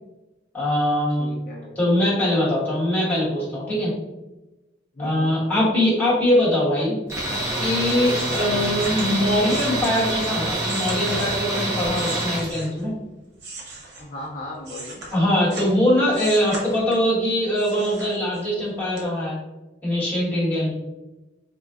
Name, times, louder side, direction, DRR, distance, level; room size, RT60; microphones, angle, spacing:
voice 1, 0.5-1.3 1.7-3.9 5.0-7.0 7.6-12.9 15.1-19.4 19.8-20.7, left 1 dB, 10° left, -10 dB, 1.2 m, -22 dB
voice 2, 1.2-1.7 4.9-5.4 8.5-8.7 14.0-15.0, left 1 dB, 45° left, -4 dB, 0.4 m, -36 dB
Tools, 7.1-12.5, right 1 dB, 15° right, 0.7 m, -26 dB
sound 1, 7.6-12.9 13.3-15.8 16.1-17.1 17.5-18.6 19.0-19.1, right 2 dB, 65° right, 0.8 m, -38 dB
3.5 x 2.3 x 2.3 m, 1.1 s
head